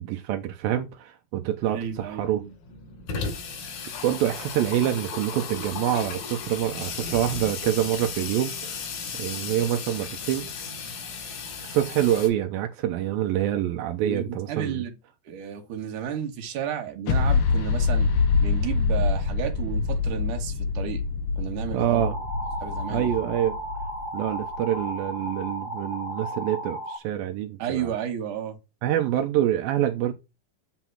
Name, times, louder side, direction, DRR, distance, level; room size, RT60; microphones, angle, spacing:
voice 1, 0.0-2.4 4.0-8.9 9.1-10.5 11.6-14.8 21.7-22.2 22.9-23.6 24.1-27.9 28.8-30.1, right 12 dB, 85° right, 2.6 m, -26 dB
Water tap faucet / Sink (filling or washing), 1.7-1.8 2.0-2.1 2.4-12.3, left 5 dB, 90° left, 4.1 m, -35 dB
voice 2, 1.7-2.5 14.0-15.0 15.3-18.1 18.4-21.0 21.4-22.0 22.6-23.1 27.6-28.6, right 9 dB, 65° right, 3.0 m, -32 dB
sound 1, 17.1-24.6, left 4 dB, 70° left, 1.3 m, -25 dB
sound 2, 22.0-27.0, equal, 45° right, 1.0 m, -35 dB
8.1 x 4.0 x 6.0 m
omnidirectional pair, 4.1 m